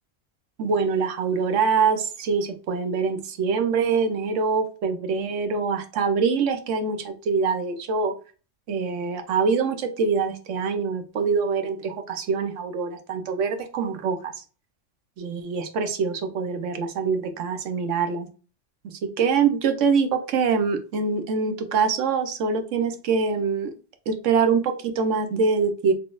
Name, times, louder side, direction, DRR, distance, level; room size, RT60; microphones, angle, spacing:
voice 1, 0.6-8.1 8.7-14.3 15.2-18.3 18.8-23.7 24.1-25.9, right 5 dB, 80° right, 7 dB, 1.0 m, -24 dB
4.0 x 3.4 x 2.3 m, 0.36 s
omnidirectional pair, 1.3 m